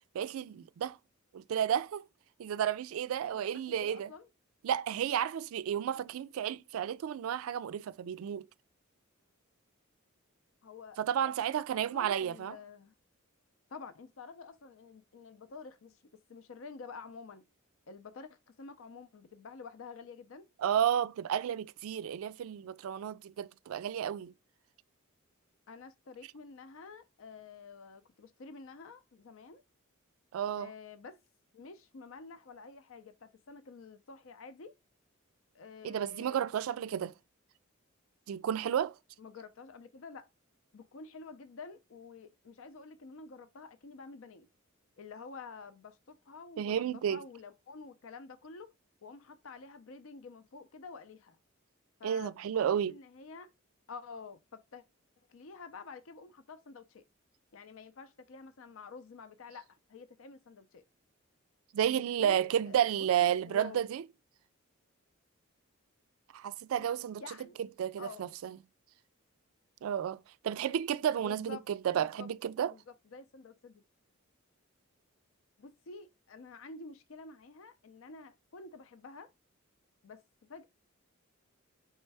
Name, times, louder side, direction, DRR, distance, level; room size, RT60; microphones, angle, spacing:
voice 1, 0.1-1.0 1.3-2.0 2.4-4.1 4.6-8.4 11.0-12.5 20.6-24.3 30.3-30.7 35.8-37.1 38.3-38.9 46.6-47.2 52.0-52.9 61.7-64.0 66.3-67.2 67.8-68.6 69.8-72.7, right 9 dB, 75° right, 0.3 m, -32 dB
voice 2, 3.2-4.3 10.6-12.9 13.7-16.0 16.3-17.4 17.9-20.5 25.7-29.6 30.5-31.2 31.5-34.7 35.5-36.5 39.2-40.3 40.7-44.5 45.0-48.7 49.0-51.4 52.0-53.5 53.9-54.8 55.3-57.0 57.5-60.8 61.9-63.8 66.8-66.9 67.2-67.6 68.0-68.3 71.2-71.7 72.0-72.3 72.6-73.8 75.6-79.3 80.0-80.2 80.5-80.7, left 4 dB, 65° left, 0.5 m, -49 dB
4.4 x 3.2 x 3.3 m
head